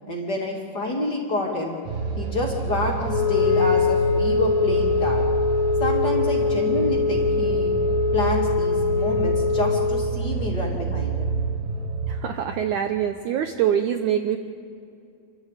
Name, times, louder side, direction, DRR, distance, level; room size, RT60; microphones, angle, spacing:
voice 1, 0.1-1.7 2.2-5.2 5.8-7.7 8.1-11.3, left 2 dB, 30° left, -1 dB, 2.3 m, -28 dB
sound 1, 1.9-12.2, right 5 dB, 65° right, 3.5 m, -28 dB
Wind instrument woodwind instrument, 3.1-10.2, left 5 dB, 70° left, 2.5 m, -23 dB
voice 2, 12.1-14.4, right 9 dB, 85° right, 6 dB, 1.7 m, -24 dB
28.0 x 12.5 x 8.2 m, 2.5 s
omnidirectional pair, 4.6 m